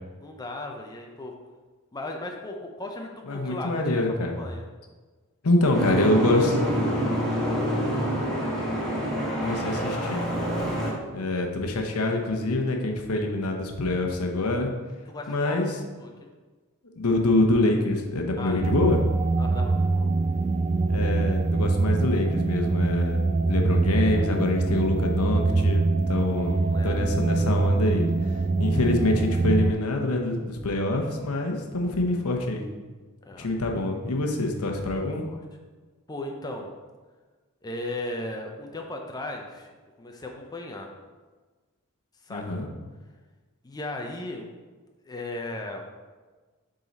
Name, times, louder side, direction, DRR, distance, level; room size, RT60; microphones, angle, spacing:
voice 1, 0.2-1.3 1.9-4.7 15.1-15.6 16.0-16.3 18.4-18.7 19.4-20.1 26.3-27.0 33.2-33.5 35.0-35.4 36.1-36.7 37.6-39.7 40.0-40.9 42.2-42.6 43.6-44.5 45.1-45.8, left 2 dB, 20° left, 2 dB, 0.5 m, -36 dB
voice 2, 3.2-4.3 5.4-6.6 9.4-10.2 11.1-14.7 15.3-15.8 17.0-19.0 20.9-23.2 23.5-28.1 28.6-32.6 33.4-35.3 42.3-42.7, left 2 dB, 75° left, 2 dB, 0.9 m, -25 dB
Boat Water vehicle, 5.7-10.9, equal, ahead, 1.6 m, -27 dB
sound 1, 18.6-29.7, right 3 dB, 30° right, 0.5 m, -24 dB
7.3 x 3.9 x 4.0 m, 1.3 s
head